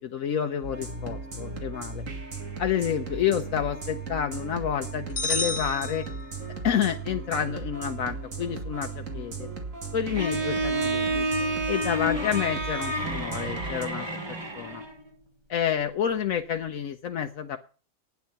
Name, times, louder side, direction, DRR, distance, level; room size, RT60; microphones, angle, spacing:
voice 1, 0.0-2.0 2.6-6.1 6.6-9.5 9.9-11.3 11.7-14.1 14.5-14.8 15.5-17.6, left 9 dB, 75° left, 5 dB, 1.2 m, -29 dB
sound 1, 0.6-13.8, right 4 dB, 70° right, 2.6 m, -37 dB
sound 2, 5.2-6.7, left 3 dB, 30° left, 1.5 m, -31 dB
Bowed string instrument, 10.1-15.0, right 1 dB, 20° right, 1.4 m, -29 dB
12.0 x 9.4 x 5.8 m, 0.40 s
omnidirectional pair, 1.4 m